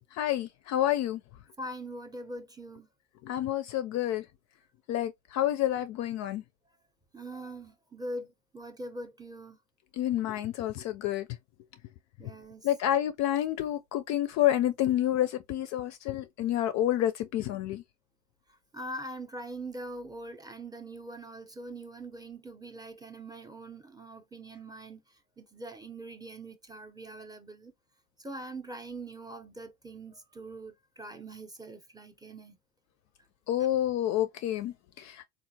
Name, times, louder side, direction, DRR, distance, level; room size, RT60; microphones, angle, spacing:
voice 1, 0.1-1.2 3.2-4.2 4.9-6.4 9.9-11.3 12.6-17.8 33.5-35.3, left 12 dB, 40° left, 0.4 m, -29 dB
voice 2, 1.6-2.9 7.1-9.6 12.2-12.7 18.5-27.7 28.2-32.6 33.6-33.7, right 1 dB, 10° right, 0.6 m, -43 dB
3.6 x 2.4 x 2.7 m
hypercardioid pair, 90°, 42 cm